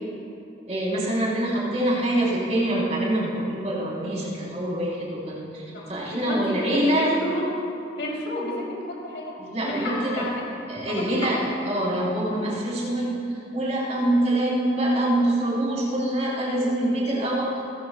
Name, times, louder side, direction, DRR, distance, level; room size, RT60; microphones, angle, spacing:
voice 1, 0.7-5.6 5.9-7.1 9.4-10.2 10.7-17.5, right 1 dB, 35° right, -6 dB, 4.2 m, -25 dB
voice 2, 5.7-7.5 8.0-10.4 10.8-11.3, left 1 dB, 70° left, -4 dB, 3.6 m, -31 dB
28.5 x 14.0 x 2.4 m, 2.6 s
head